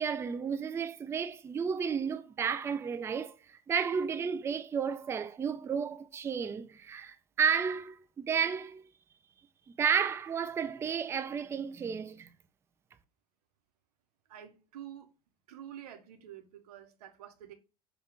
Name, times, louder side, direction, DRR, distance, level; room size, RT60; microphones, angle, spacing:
voice 1, 0.0-8.9 9.8-12.3, right 6 dB, 15° right, 0.3 m, -32 dB
voice 2, 14.3-15.1 15.5-17.5, right 10 dB, 65° right, 0.8 m, -48 dB
5.4 x 2.3 x 3.5 m
figure-of-eight pair, 65°, 21 cm